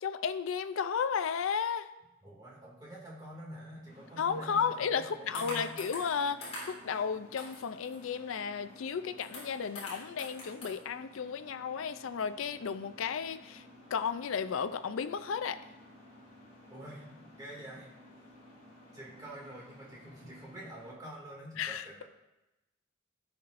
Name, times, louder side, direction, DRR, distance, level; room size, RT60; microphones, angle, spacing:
voice 1, 0.0-1.9 4.2-13.6 13.9-15.6 21.6-22.0, left 6 dB, 75° left, 11 dB, 0.4 m, -33 dB
voice 2, 2.2-5.8 16.7-17.9 18.9-22.0, right 1 dB, 20° right, -4 dB, 2.2 m, -47 dB
sound 1, 3.8-20.9, left 1 dB, 55° left, 3.2 m, -55 dB
sound 2, 5.3-6.2 6.4-6.9 7.4-8.3 8.7-8.8 9.0-10.7, left 1 dB, 30° left, 3.3 m, -43 dB
16.0 x 5.6 x 2.5 m, 0.97 s
head